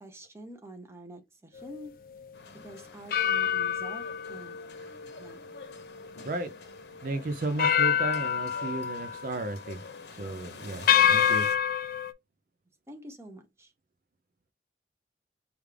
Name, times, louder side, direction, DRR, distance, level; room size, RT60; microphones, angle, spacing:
voice 1, 0.0-1.9 2.6-4.6 5.2-5.4 12.9-13.7, right 1 dB, 15° right, 0.7 m, -46 dB
sound 1, 1.6-1.8 3.1-6.5 6.9-7.0 7.6-9.4 9.8-10.0 10.9-12.1, left 8 dB, 55° left, 0.3 m, -27 dB
sound 2, 2.3-11.6, left 4 dB, 80° left, 0.9 m, -47 dB
voice 2, 7.0-9.8 10.2-11.5, right 2 dB, 50° right, 0.4 m, -34 dB
4.9 x 2.4 x 3.2 m
head